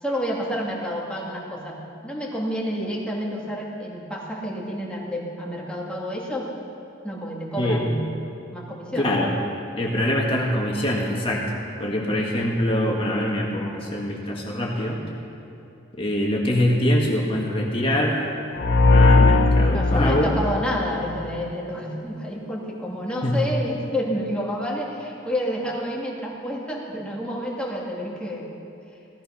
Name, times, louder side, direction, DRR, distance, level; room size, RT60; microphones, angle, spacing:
voice 1, 0.0-6.5 7.0-8.0 8.5-9.1 19.7-28.5, equal, 5° left, -3 dB, 2.2 m, -29 dB
voice 2, 9.0-9.3 9.8-11.5 11.8-15.0 16.0-18.2 18.9-20.3 23.2-23.4, left 1 dB, 30° left, -2 dB, 1.8 m, -23 dB
sound 1, 18.6-21.4, left 3 dB, 55° left, 0.6 m, -18 dB
16.5 x 14.0 x 5.7 m, 2.8 s
head